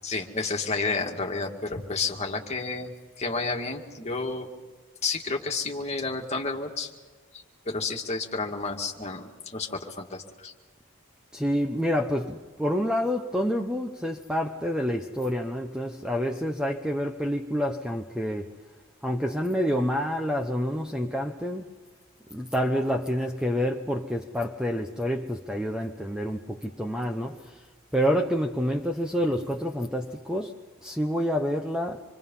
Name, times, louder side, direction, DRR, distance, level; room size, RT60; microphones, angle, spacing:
voice 1, 0.0-2.9 3.2-4.5 5.0-6.9 7.7-10.5, left 3 dB, 30° left, 2.1 m, -31 dB
voice 2, 11.3-18.5 19.0-21.7 22.3-27.6 27.9-32.0, equal, 5° right, 0.9 m, -28 dB
27.0 x 24.0 x 5.6 m
head